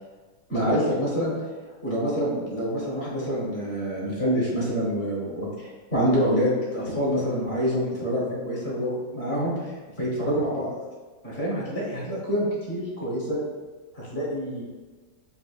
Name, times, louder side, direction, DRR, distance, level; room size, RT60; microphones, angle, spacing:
voice 1, 0.5-1.3 1.8-10.7 11.2-13.4 13.9-14.6, equal, 40° left, -6 dB, 1.3 m, -26 dB
5.7 x 2.6 x 2.3 m, 1.3 s
omnidirectional pair, 1.8 m